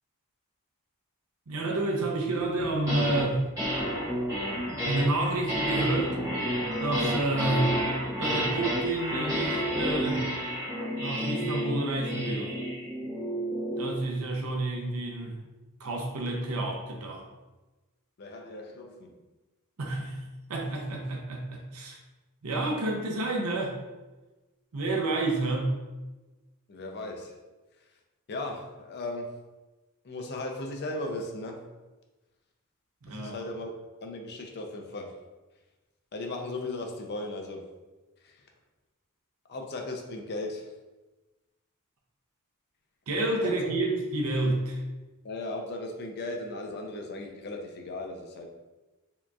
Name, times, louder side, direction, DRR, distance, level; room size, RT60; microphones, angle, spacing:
voice 1, 1.5-3.5 4.8-6.2 6.8-7.8 8.2-10.3 11.0-12.5 13.8-15.4 15.8-17.2 19.8-20.2 20.5-22.0 22.4-23.8 24.7-25.8 33.0-33.4 43.1-44.8, right 2 dB, 70° right, 1 dB, 0.6 m, -29 dB
sound 1, 2.6-3.3 3.6-14.0, equal, 15° right, 1.4 m, -30 dB
voice 2, 18.2-19.2 26.7-27.3 28.3-29.3 30.0-31.6 33.1-33.7 34.0-35.1 36.1-37.6 38.2-38.4 39.5-40.7 43.4-43.7 45.2-48.5, left 2 dB, 50° left, 2 dB, 0.5 m, -37 dB
4.5 x 2.9 x 2.3 m, 1.1 s
head